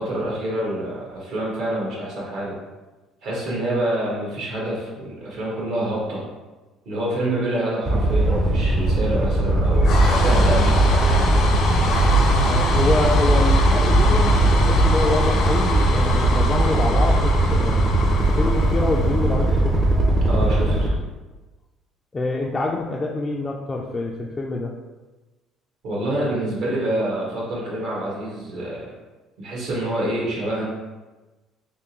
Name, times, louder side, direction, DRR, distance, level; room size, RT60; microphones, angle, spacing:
voice 1, 0.0-2.5 3.2-6.2 6.8-11.2 20.3-20.9 25.8-28.9 29.4-30.6, right 1 dB, 75° right, -4 dB, 1.3 m, -27 dB
sound 1, 7.8-20.9, right 1 dB, 25° right, 0.6 m, -20 dB
sound 2, 9.3-19.8, equal, 65° left, 0.6 m, -22 dB
voice 2, 12.4-17.9 18.3-19.8 22.1-24.8, left 2 dB, 20° left, -2 dB, 0.3 m, -26 dB
3.5 x 3.0 x 2.9 m, 1.2 s
cardioid pair, 110°, 0 cm